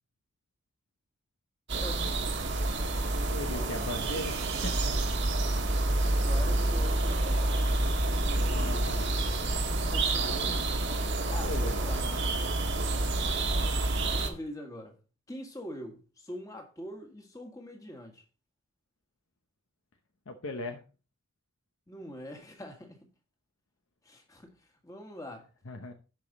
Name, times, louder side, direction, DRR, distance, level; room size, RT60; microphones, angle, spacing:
voice 1, 1.7-2.1 3.5-3.7 6.0-7.5 9.7-12.1 14.1-15.0 15.3-18.2 21.9-23.0 24.0-24.5 24.8-25.5, left 1 dB, 15° left, 1.7 m, -43 dB
sound 1, 1.7-14.3, right 2 dB, 55° right, 1.4 m, -28 dB
voice 2, 3.3-4.9 8.3-9.4 10.1-10.7 11.4-12.2 20.3-20.8 25.7-25.9, left 2 dB, 70° left, 0.9 m, -39 dB
sound 2, 3.3-4.9, right 8 dB, 85° right, 2.3 m, -45 dB
11.5 x 5.2 x 4.0 m
head